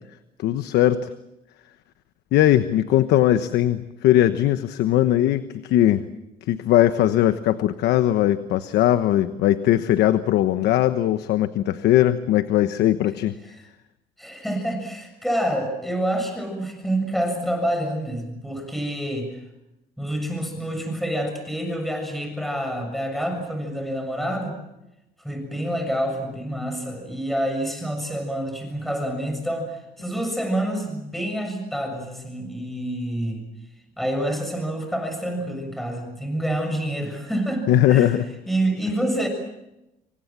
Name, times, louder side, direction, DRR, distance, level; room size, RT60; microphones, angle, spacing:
voice 1, 0.4-1.0 2.3-6.0 6.5-13.3 37.7-38.2, left 13 dB, 80° left, 11 dB, 1.1 m, -19 dB
voice 2, 14.2-19.3 20.0-24.5 25.2-33.5 34.0-38.1 38.5-39.3, right 1 dB, ahead, 5 dB, 7.0 m, -27 dB
27.0 x 24.5 x 7.5 m, 0.93 s
cardioid pair, 110°, 17 cm